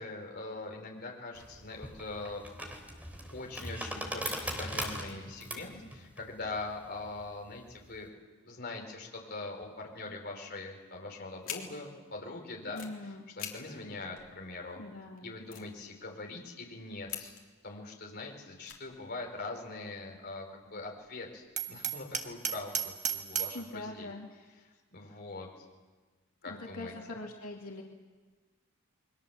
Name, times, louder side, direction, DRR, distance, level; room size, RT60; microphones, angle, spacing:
voice 1, 0.0-2.4 3.3-8.1 8.4-12.8 13.4-14.8 15.2-17.4 17.6-24.1 24.9-25.5 26.4-27.2, left 3 dB, 45° left, 1 dB, 4.9 m, -42 dB
sound 1, 1.3-8.0, equal, 5° right, 3.2 m, -40 dB
sound 2, 11.4-11.6 12.6-13.0 13.4-13.5 13.8-13.9 14.1-14.7 15.1-15.2 15.5-16.4 17.1-17.6 18.0-18.2 18.6-19.4, left 10 dB, 65° left, 3.7 m, -43 dB
voice 2, 12.7-13.3 14.8-15.3 23.5-24.3 26.5-27.8, left 2 dB, 80° left, -1 dB, 2.6 m, -42 dB
Hammer, 21.6-23.6, right 9 dB, 35° right, 1.7 m, -34 dB
28.5 x 22.5 x 7.3 m, 1.3 s
head